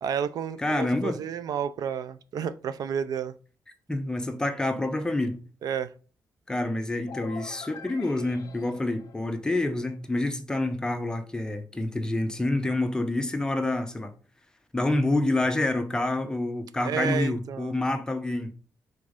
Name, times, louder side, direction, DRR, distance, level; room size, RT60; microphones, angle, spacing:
voice 1, 0.0-3.3 5.6-5.9 16.8-17.7, right 7 dB, 70° right, 0.4 m, -31 dB
voice 2, 0.6-1.2 3.9-5.4 6.5-14.1 14.7-18.5, left 2 dB, 10° left, 0.7 m, -27 dB
sound 1, 7.1-9.9, left 7 dB, 60° left, 0.7 m, -45 dB
5.3 x 4.0 x 5.0 m
wide cardioid pair, 150°, 7 cm